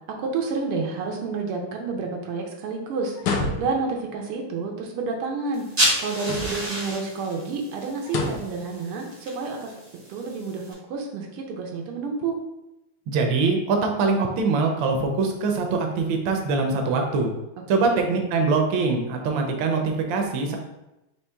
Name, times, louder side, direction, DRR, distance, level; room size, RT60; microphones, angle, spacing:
voice 1, 0.2-5.6 6.0-9.6 10.1-12.4 17.8-18.1, right 4 dB, 85° right, 1 dB, 1.6 m, -29 dB
sound 1, 3.2-4.0 6.2-6.8 8.0-8.6, left 3 dB, 70° left, 1.0 m, -28 dB
sound 2, 5.5-10.7, right 1 dB, 30° right, 0.7 m, -30 dB
voice 2, 13.1-17.3 17.7-20.6, right 4 dB, 70° right, 3 dB, 1.3 m, -23 dB
4.4 x 2.9 x 3.4 m, 0.94 s
omnidirectional pair, 2.4 m